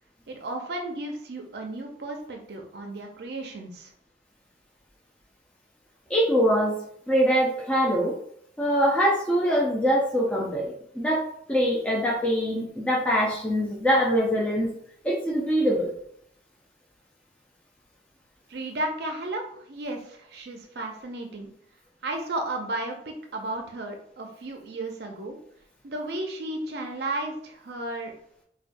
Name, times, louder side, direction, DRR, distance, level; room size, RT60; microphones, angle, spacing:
voice 1, 0.3-3.9 18.5-21.5 22.0-25.4 25.8-28.1, right 2 dB, 60° right, 2 dB, 0.5 m, -34 dB
voice 2, 6.1-6.8 7.1-8.1 8.6-14.7 15.0-15.9, equal, 5° left, -4 dB, 0.4 m, -23 dB
4.7 x 2.2 x 2.5 m, 0.69 s
head